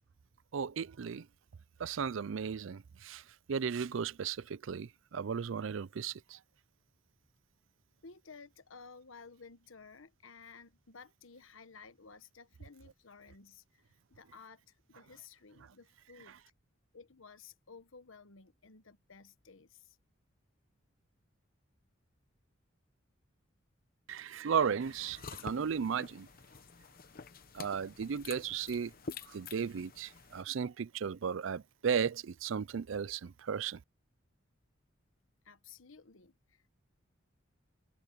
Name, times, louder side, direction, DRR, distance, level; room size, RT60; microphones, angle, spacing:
voice 1, 0.5-1.3 1.8-3.2 3.5-6.4 24.1-26.3 27.5-28.9 29.3-33.8, right 6 dB, 70° right, 0.5 m, -35 dB
voice 2, 8.0-13.8 14.1-16.4 16.9-20.0 35.4-36.8, left 5 dB, 80° left, 1.2 m, -55 dB
sound 1, 24.8-30.4, left 4 dB, 45° left, 1.0 m, -48 dB
head